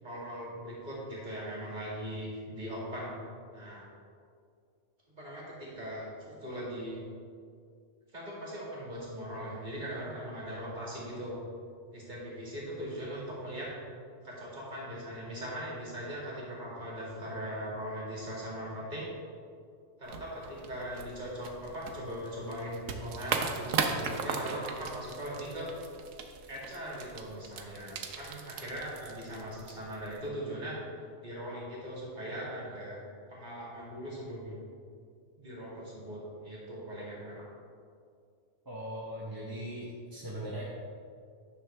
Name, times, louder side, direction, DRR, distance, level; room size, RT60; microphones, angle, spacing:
voice 1, 0.0-3.2 3.5-3.8 5.1-7.0 8.1-11.4 11.9-13.7 14.2-19.1 20.0-25.7 26.5-30.8 31.2-33.0 33.3-34.6 35.4-37.4, equal, 35° right, -6 dB, 2.2 m, -40 dB
sound 1, 20.0-30.3, right 5 dB, 90° right, 1.1 m, -38 dB
voice 2, 38.7-40.6, equal, 20° right, -6 dB, 0.8 m, -39 dB
9.7 x 6.2 x 3.4 m, 2.3 s
omnidirectional pair, 1.3 m